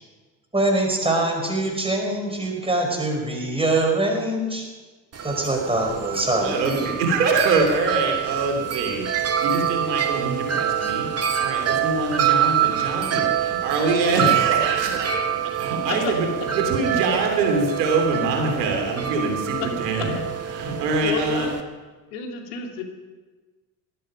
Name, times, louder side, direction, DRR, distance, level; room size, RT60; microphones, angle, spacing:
voice 1, 0.5-4.7 5.2-6.6, right 2 dB, 10° right, 1 dB, 5.1 m, -23 dB
Wind chime, 5.1-21.6, right 10 dB, 30° right, 1.7 m, -26 dB
voice 2, 6.4-16.3 16.5-20.1 20.5-21.5, right 3 dB, 75° right, 2 dB, 3.2 m, -24 dB
voice 3, 21.0-21.5 22.1-22.8, left 6 dB, 70° left, 2 dB, 2.5 m, -29 dB
18.0 x 12.5 x 5.1 m, 1.3 s
figure-of-eight pair, 60°, 49 cm